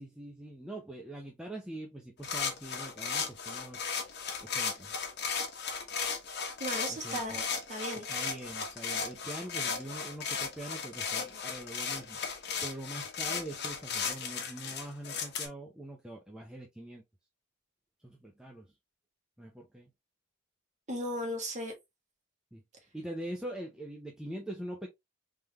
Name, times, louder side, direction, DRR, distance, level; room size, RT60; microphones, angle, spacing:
voice 1, 0.0-3.9 4.4-5.0 6.9-7.4 7.9-17.0 18.0-18.7 19.4-19.9 22.5-22.6 22.9-24.9, right 1 dB, 5° right, 0.6 m, -43 dB
sound 1, 2.2-15.5, left 6 dB, 50° left, 1.0 m, -35 dB
voice 2, 6.6-8.1 20.9-21.7, equal, 35° right, 1.6 m, -36 dB
3.8 x 3.4 x 3.0 m
head